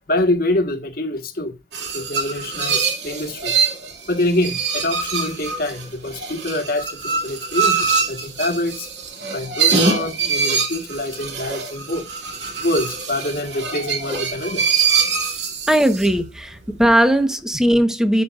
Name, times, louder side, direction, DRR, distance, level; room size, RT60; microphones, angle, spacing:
voice 1, 0.1-1.5 1.9-3.6 4.1-8.9 9.3-12.1 12.6-14.6, left 1 dB, 50° left, 1.5 m, -25 dB
sound 1, 1.7-16.2, right 5 dB, 65° right, 2.5 m, -23 dB
voice 2, 15.7-18.2, right 1 dB, 5° right, 1.2 m, -18 dB
13.5 x 6.0 x 2.5 m
head